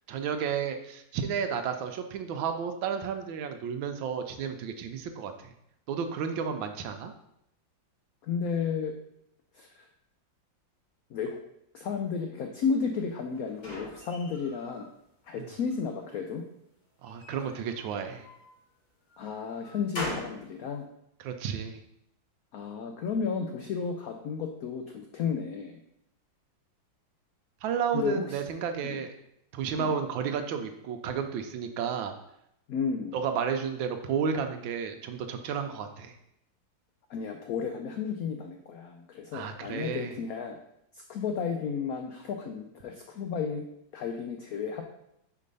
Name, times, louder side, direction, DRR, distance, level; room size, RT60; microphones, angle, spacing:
voice 1, 0.1-5.5 5.9-7.1 15.4-15.5 17.0-18.3 21.2-21.8 27.6-29.1 29.5-32.1 33.1-36.1 39.3-40.1, right 7 dB, 80° right, 6 dB, 1.3 m, -32 dB
voice 2, 8.2-8.9 9.5-9.9 11.1-11.4 11.7-14.9 15.3-16.4 19.2-20.8 22.5-25.8 27.9-28.4 28.8-29.0 29.8-30.0 32.7-33.2 37.1-40.6 40.9-43.6 43.9-44.8, left 6 dB, 75° left, 4 dB, 0.8 m, -33 dB
sound 1, 12.9-14.9 15.3-16.1 17.0-18.5 19.1-20.4, left 1 dB, 45° left, 2.7 m, -41 dB
4.9 x 4.6 x 5.3 m, 0.79 s
omnidirectional pair, 2.1 m